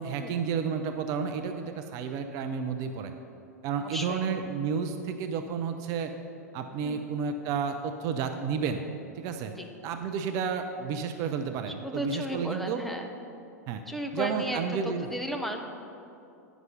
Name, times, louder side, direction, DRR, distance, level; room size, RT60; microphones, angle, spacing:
voice 1, 0.0-3.1 3.6-6.1 6.5-8.8 9.2-9.5 9.8-12.8 13.7-13.8 14.1-15.1, right 6 dB, 40° right, 7 dB, 0.5 m, -31 dB
voice 2, 3.8-4.3 6.8-7.1 9.6-9.7 11.8-13.1 13.9-15.6, equal, ahead, 2 dB, 0.7 m, -35 dB
9.4 x 6.0 x 5.6 m, 2.7 s
figure-of-eight pair, 95°, 9 cm